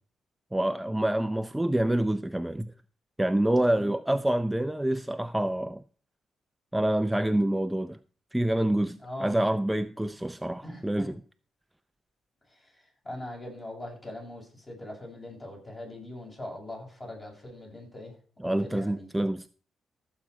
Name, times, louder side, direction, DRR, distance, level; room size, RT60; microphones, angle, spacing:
voice 1, 0.5-2.7 3.2-5.8 6.7-8.0 8.3-11.2 18.4-19.5, right 1 dB, 10° right, 0.6 m, -27 dB
voice 2, 3.6-3.9 9.0-9.4 10.6-11.1 13.0-18.1 18.4-19.1, left 1 dB, 30° left, 6.9 m, -41 dB
14.5 x 7.6 x 4.8 m
cardioid pair, 65°, 0 cm